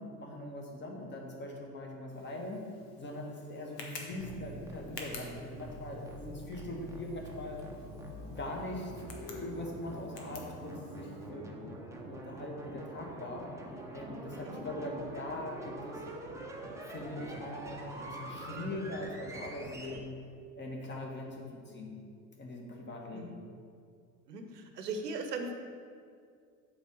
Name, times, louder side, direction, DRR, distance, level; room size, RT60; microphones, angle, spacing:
voice 1, 0.0-2.6 3.0-7.6 8.2-11.6 11.9-16.0 16.9-20.2 20.5-22.0 22.3-23.3, left 1 dB, 20° left, 0 dB, 1.4 m, -41 dB
Tick, 2.1-11.3, left 4 dB, 75° left, 1.3 m, -51 dB
sound 1, 4.1-20.0, right 1 dB, 5° right, 0.8 m, -45 dB
voice 2, 24.3-25.5, right 3 dB, 75° right, 6 dB, 0.9 m, -38 dB
7.9 x 3.8 x 6.2 m, 2.2 s
figure-of-eight pair, 75°, 48 cm